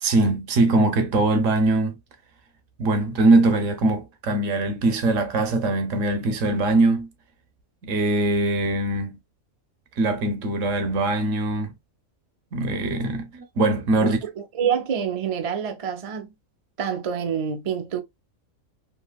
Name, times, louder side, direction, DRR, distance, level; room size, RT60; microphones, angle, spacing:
voice 1, 0.0-1.9 2.8-7.1 7.8-9.2 10.0-11.7 12.5-14.2, right 2 dB, 75° right, 1.1 m, -22 dB
voice 2, 14.0-16.3 16.8-18.0, right 8 dB, 50° right, 0.4 m, -27 dB
3.2 x 2.7 x 2.2 m
omnidirectional pair, 1.4 m